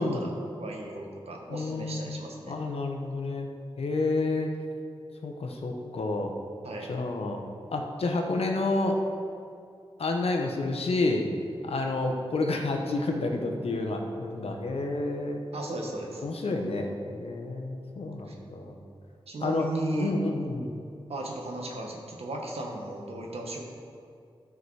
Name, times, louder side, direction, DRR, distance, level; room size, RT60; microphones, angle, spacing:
voice 1, 0.0-2.5 6.6-6.9 15.5-16.2 18.3-18.4 19.3-20.1 21.1-23.6, right 1 dB, 90° right, 0 dB, 1.3 m, -36 dB
voice 2, 1.5-3.5 3.8-4.5 5.2-6.3 6.9-7.4 7.7-9.0 10.0-11.3 11.6-15.4 16.2-18.8 19.4-19.7 20.0-20.7, left 2 dB, 80° left, 2 dB, 1.0 m, -29 dB
12.5 x 4.9 x 4.8 m, 2.4 s
wide cardioid pair, 95°, 10 cm